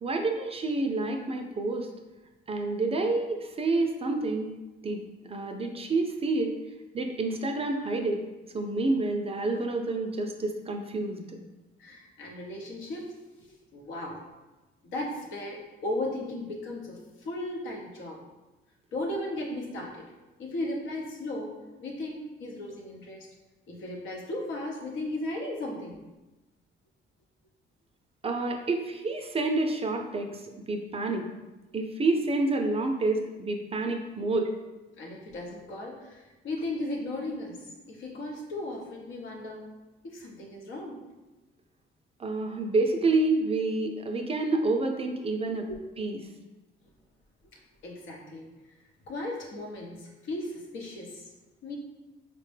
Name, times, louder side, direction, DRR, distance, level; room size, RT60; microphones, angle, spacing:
voice 1, 0.0-1.9 2.5-4.5 4.8-6.5 6.9-8.2 8.5-11.4 28.2-31.3 31.7-34.5 42.2-45.7 46.0-46.2, right 2 dB, 30° right, 4 dB, 0.4 m, -28 dB
voice 2, 11.8-13.1 13.4-14.2 14.8-18.2 18.9-20.1 20.4-23.3 23.7-26.0 35.0-39.7 40.0-41.0 45.7-45.8 47.5-48.5 49.1-51.3 51.6-51.8, left 1 dB, 75° left, 0 dB, 0.8 m, -36 dB
4.1 x 2.1 x 3.2 m, 1.1 s
cardioid pair, 90°, 20 cm